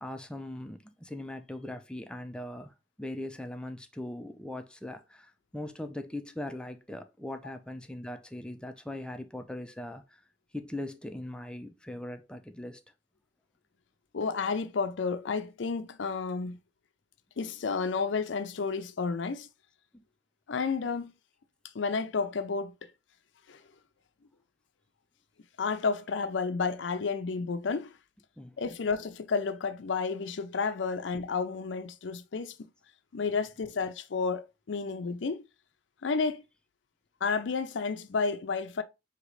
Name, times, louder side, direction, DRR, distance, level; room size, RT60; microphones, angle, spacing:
voice 1, 0.0-10.2 10.5-12.8 19.9-20.0 28.4-28.8, left 1 dB, 5° left, 0.5 m, -40 dB
voice 2, 14.1-16.6 17.4-19.5 20.5-21.1 21.7-22.7 23.5-23.6 25.6-27.9 28.6-32.7 33.1-35.4 36.0-36.4 37.2-38.8, left 4 dB, 80° left, 0.5 m, -31 dB
5.0 x 2.9 x 3.1 m
head